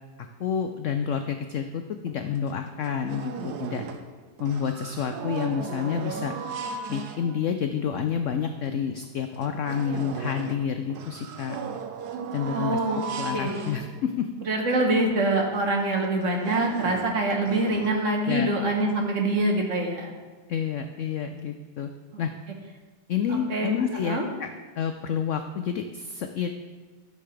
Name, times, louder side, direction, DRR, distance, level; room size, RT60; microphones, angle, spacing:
voice 1, 0.4-3.8 4.4-6.3 6.9-11.6 12.3-12.8 13.2-14.3 18.3-18.5 20.5-21.9 22.2-22.3 23.1-24.5 24.8-26.5, left 7 dB, 80° left, 7 dB, 0.6 m, -29 dB
sound 1, 2.1-2.2 2.5-4.1 4.4-7.6 8.2-8.3 8.7-8.8 9.2-14.4 15.0-15.1 15.4-15.6 16.0-17.9, right 5 dB, 70° right, 1.2 m, -36 dB
voice 2, 12.5-13.0 13.3-13.7 14.4-20.1 22.1-22.2 23.3-23.8 24.0-24.3, right 2 dB, 50° right, 1 dB, 1.5 m, -25 dB
13.5 x 6.9 x 3.3 m, 1.4 s
omnidirectional pair, 1.9 m